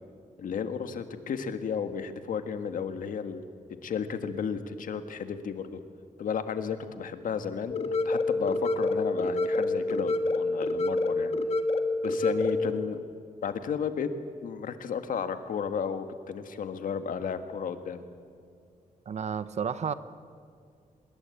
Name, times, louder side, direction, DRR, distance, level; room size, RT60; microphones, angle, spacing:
voice 1, 0.4-3.4 3.8-5.8 6.2-11.3 12.0-13.0 13.4-14.1 14.4-18.0, left 6 dB, 80° left, 9 dB, 1.7 m, -33 dB
sound 1, 7.7-12.7, left 2 dB, 50° left, 1.6 m, -27 dB
voice 2, 19.1-19.9, right 7 dB, 55° right, 13 dB, 1.0 m, -31 dB
26.0 x 22.0 x 8.5 m, 2.2 s
wide cardioid pair, 145°, 14 cm